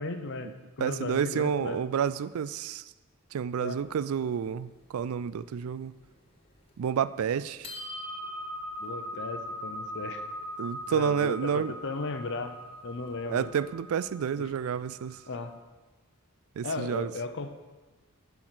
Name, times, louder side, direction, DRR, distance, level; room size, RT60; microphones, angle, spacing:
voice 1, 0.0-1.8 3.6-3.8 8.8-10.3 10.9-12.5 12.8-13.5 14.4-14.5 15.3-15.5 16.6-17.5, left 3 dB, 60° left, 0.7 m, -36 dB
voice 2, 0.8-2.8 3.3-5.9 6.8-7.7 10.6-11.7 13.3-15.2 16.6-17.1, right 7 dB, 70° right, 0.3 m, -30 dB
sound 1, 3.7-5.7 6.0-6.1 6.5-7.1 7.4-15.5, equal, 25° left, 1.2 m, -41 dB
8.7 x 5.9 x 6.1 m
head